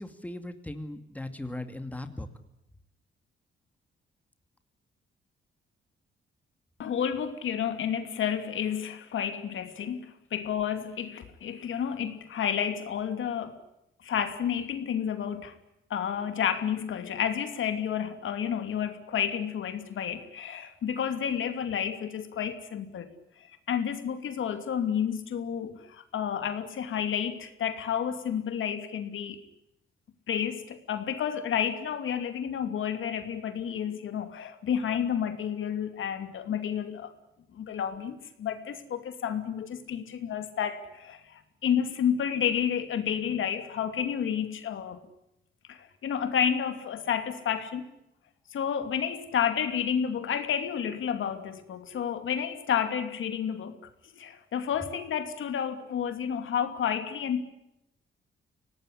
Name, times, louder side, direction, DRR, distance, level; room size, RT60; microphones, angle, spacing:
voice 1, 0.0-2.3, left 1 dB, 5° left, 8 dB, 2.3 m, -38 dB
voice 2, 6.8-13.6 14.0-15.5 15.9-23.1 23.4-29.4 30.3-37.1 37.5-45.0 45.7-47.9 48.5-53.8 54.1-57.4, left 8 dB, 70° left, 9 dB, 2.8 m, -30 dB
26.0 x 18.5 x 10.0 m, 0.86 s
cardioid pair, 115°, 21 cm